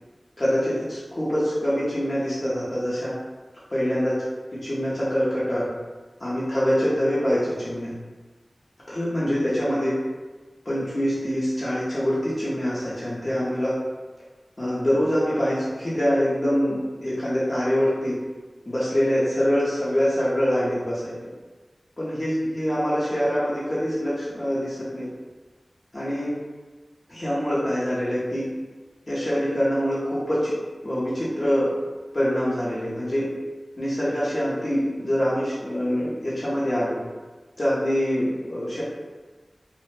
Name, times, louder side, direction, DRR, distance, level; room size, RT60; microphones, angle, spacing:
voice 1, 0.4-3.1 3.7-4.1 4.5-5.7 6.2-7.9 8.9-10.0 10.7-13.7 14.6-18.2 18.7-21.1 22.0-25.1 25.9-26.3 27.1-28.5 29.1-30.5 30.8-31.7 32.1-33.3 33.8-37.0 37.6-38.8, equal, 45° left, -10 dB, 0.6 m, -24 dB
2.1 x 2.0 x 3.0 m, 1.3 s
wide cardioid pair, 60°, 0 cm